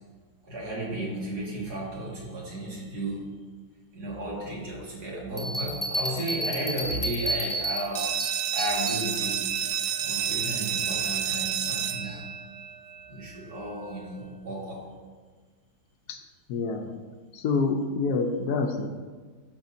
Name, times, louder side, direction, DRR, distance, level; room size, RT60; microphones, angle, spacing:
voice 1, 0.4-3.2 3.9-8.1 8.5-9.4 10.0-12.2 13.1-14.8, right 1 dB, 70° right, -4 dB, 2.4 m, -34 dB
Bell, 5.4-9.0, right 1 dB, ahead, 1.2 m, -31 dB
sound 1, 8.0-13.4, right 9 dB, 90° right, 1.2 m, -30 dB
voice 2, 16.5-16.9 17.3-18.9, left 4 dB, 75° left, 5 dB, 1.2 m, -27 dB
13.0 x 5.6 x 2.7 m, 1.4 s
omnidirectional pair, 1.8 m